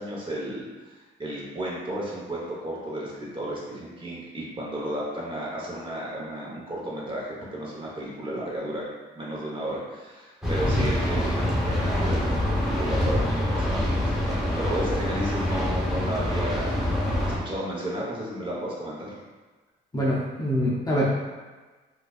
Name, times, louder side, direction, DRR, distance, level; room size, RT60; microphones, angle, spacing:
voice 1, 0.0-8.8 9.1-17.2 17.4-19.2, right 1 dB, 25° right, -5 dB, 1.1 m, -33 dB
sound 1, 10.4-17.4, left 1 dB, ahead, 1.0 m, -25 dB
voice 2, 19.9-21.1, equal, 20° left, -6 dB, 0.7 m, -25 dB
4.4 x 2.5 x 2.4 m, 1.3 s
cardioid pair, 90°, 20 cm